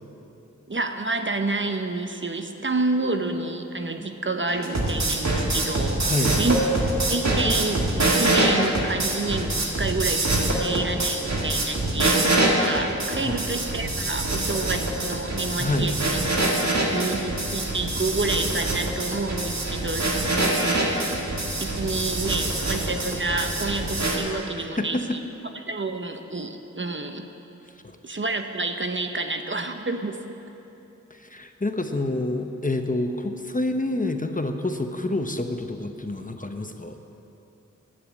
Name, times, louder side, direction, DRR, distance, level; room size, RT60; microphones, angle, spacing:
voice 1, 0.7-6.0 6.4-6.6 7.1-12.2 12.5-16.2 16.9-21.1 21.6-25.2 25.5-27.3 28.0-30.2, right 2 dB, 40° right, 6 dB, 0.8 m, -29 dB
sound 1, 4.5-24.2, right 2 dB, 65° right, 1.9 m, -25 dB
voice 2, 6.0-6.4 13.2-13.4 15.6-15.9 24.8-25.2 27.8-28.0 31.1-37.0, left 2 dB, 25° left, 6 dB, 0.8 m, -28 dB
10.0 x 9.4 x 8.3 m, 3.0 s
wide cardioid pair, 45°, 29 cm